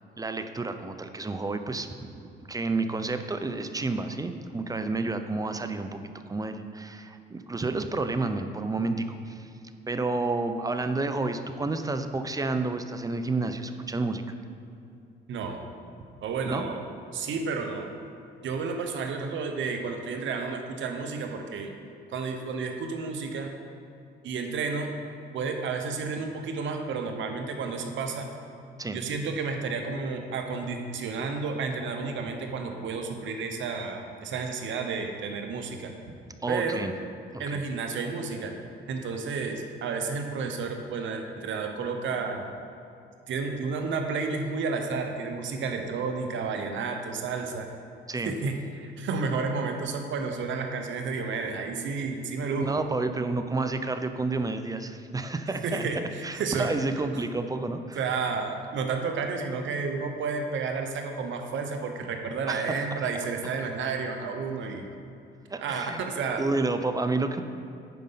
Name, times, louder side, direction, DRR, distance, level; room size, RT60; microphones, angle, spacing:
voice 1, 0.2-9.5 9.9-14.2 16.5-16.7 28.8-29.0 36.4-36.9 37.3-37.6 48.1-48.3 52.6-55.8 56.2-58.0 62.5-62.8 65.5-66.0 66.4-67.4, right 3 dB, 20° right, 8 dB, 0.6 m, -30 dB
voice 2, 16.2-16.8 17.1-17.9 18.4-21.7 22.1-23.5 24.2-24.9 25.3-28.3 28.9-35.9 36.5-36.8 37.4-38.5 38.9-42.5 43.3-47.7 48.2-52.8 55.5-56.7 57.9-64.9 65.6-66.4, right 4 dB, 75° right, 4 dB, 1.0 m, -31 dB
9.3 x 5.2 x 5.7 m, 2.6 s
cardioid pair, 90°, 20 cm